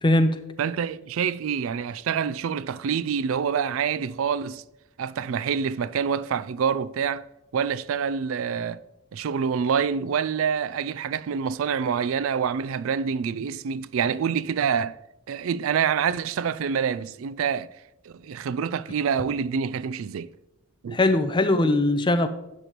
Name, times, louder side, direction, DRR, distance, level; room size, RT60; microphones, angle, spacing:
voice 1, 0.0-0.4 20.9-22.3, left 2 dB, 20° left, 0.6 m, -20 dB
voice 2, 0.6-4.6 5.0-7.3 7.5-8.8 9.1-15.0 15.3-17.7 18.1-20.3 20.8-21.0, right 7 dB, 70° right, 0.3 m, -26 dB
12.0 x 8.2 x 3.0 m
head